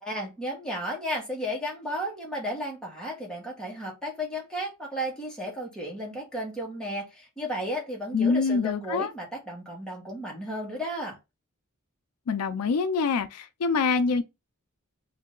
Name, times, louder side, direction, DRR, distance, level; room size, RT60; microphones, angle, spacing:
voice 1, 0.0-11.2, equal, 5° left, 1.4 m, -33 dB
voice 2, 8.1-9.1 12.3-14.2, left 4 dB, 80° left, 0.4 m, -25 dB
3.2 x 2.8 x 3.7 m
head